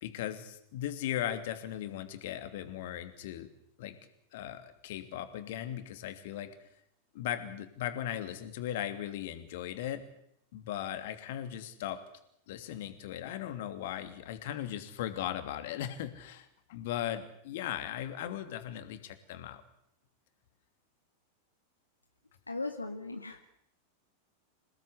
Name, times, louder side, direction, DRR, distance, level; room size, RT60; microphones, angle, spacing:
voice 1, 0.0-3.5 3.8-4.0 4.3-6.5 7.1-10.0 10.5-12.0 12.5-19.6, left 11 dB, 55° left, 9 dB, 2.8 m, -38 dB
voice 2, 22.5-23.5, left 2 dB, 80° left, 6 dB, 1.5 m, -38 dB
27.5 x 18.0 x 8.2 m, 0.75 s
figure-of-eight pair, 90°, 0 cm